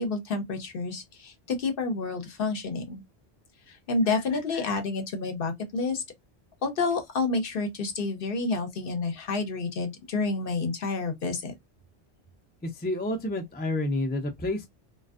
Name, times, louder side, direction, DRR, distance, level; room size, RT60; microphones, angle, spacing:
voice 1, 0.0-3.0 3.7-6.0 6.6-11.5, left 3 dB, 60° left, 0.8 m, -29 dB
voice 2, 12.6-14.7, left 1 dB, 15° left, 0.3 m, -29 dB
2.5 x 2.3 x 2.3 m
omnidirectional pair, 1.1 m